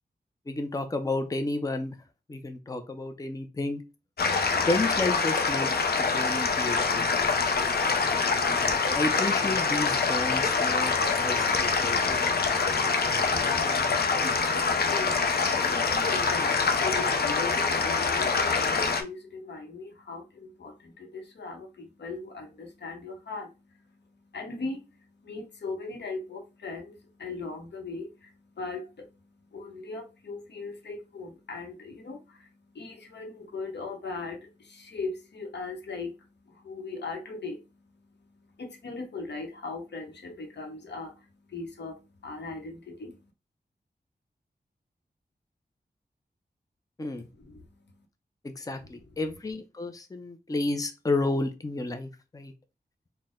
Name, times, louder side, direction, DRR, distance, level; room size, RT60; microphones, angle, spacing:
voice 1, 0.5-2.0 2.3-3.8 4.7-5.7 6.1-7.3 8.3-12.3 47.0-47.3 48.4-52.5, left 2 dB, 20° left, 0.5 m, -31 dB
sound 1, 4.2-19.0, left 4 dB, 65° left, 0.6 m, -25 dB
voice 2, 13.2-43.3 47.4-48.1 48.8-48.9, left 3 dB, 90° left, 0.9 m, -39 dB
4.2 x 2.1 x 3.6 m
wide cardioid pair, 95°, 17 cm